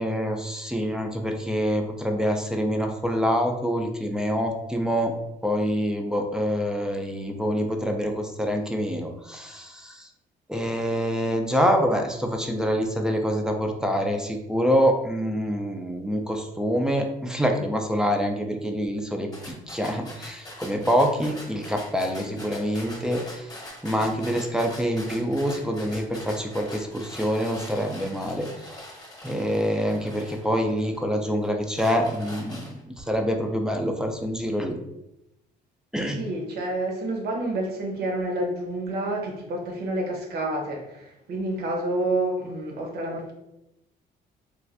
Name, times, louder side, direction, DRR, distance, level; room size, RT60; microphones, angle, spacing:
voice 1, 0.0-5.1 5.4-10.1 10.5-28.8 29.2-34.8 35.9-36.2, equal, 5° right, 3 dB, 0.4 m, -26 dB
sound 1, 19.3-31.0 31.4-33.0, left 1 dB, 20° left, 0.9 m, -43 dB
voice 2, 36.1-43.3, right 1 dB, 70° right, 0 dB, 0.9 m, -29 dB
3.2 x 2.4 x 2.5 m, 0.89 s
cardioid pair, 110°, 17 cm